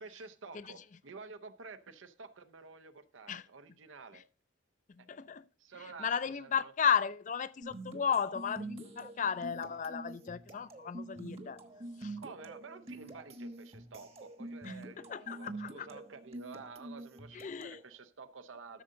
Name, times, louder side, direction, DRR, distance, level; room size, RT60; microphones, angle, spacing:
voice 1, 0.0-4.2 5.0-5.2 5.6-6.7 12.2-18.8, right 4 dB, 85° right, 0.8 m, -50 dB
voice 2, 4.9-5.5 6.0-11.6 12.0-12.2 14.6-15.9 17.3-17.8, left 7 dB, 40° left, 0.4 m, -34 dB
sound 1, 7.6-17.9, right 2 dB, 30° right, 1.0 m, -46 dB
12.5 x 6.6 x 3.8 m
head